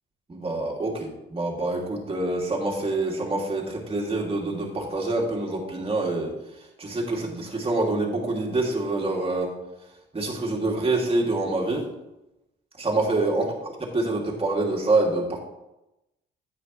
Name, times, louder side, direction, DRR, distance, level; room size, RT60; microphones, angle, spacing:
voice 1, 0.3-6.3 6.8-9.5 10.1-11.9 12.8-13.5 13.9-15.4, right 2 dB, 30° right, -2 dB, 2.6 m, -26 dB
10.0 x 8.4 x 3.2 m, 0.94 s
cardioid pair, 90°, 20 cm